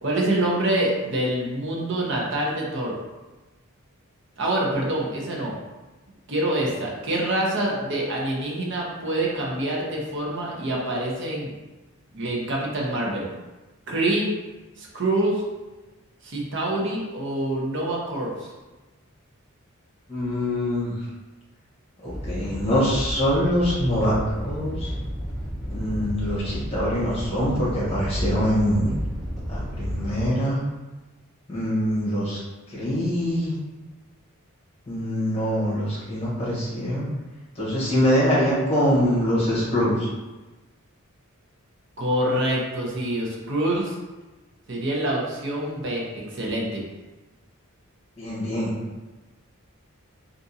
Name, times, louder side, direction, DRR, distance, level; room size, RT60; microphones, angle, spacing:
voice 1, 0.0-2.9 4.4-5.5 6.3-11.5 12.1-13.3 13.9-14.3 14.8-15.4 16.2-18.5 42.0-43.9 44.7-46.8, right 1 dB, 55° right, -3 dB, 0.8 m, -26 dB
voice 2, 20.1-20.9 22.0-24.9 25.7-28.9 29.5-30.6 31.5-32.4 32.7-33.5 34.9-37.0 37.6-40.1 48.2-48.8, equal, 25° left, -7 dB, 1.1 m, -24 dB
Animal, 22.0-30.2, equal, ahead, 0.6 m, -31 dB
3.6 x 2.6 x 2.7 m, 1.1 s
head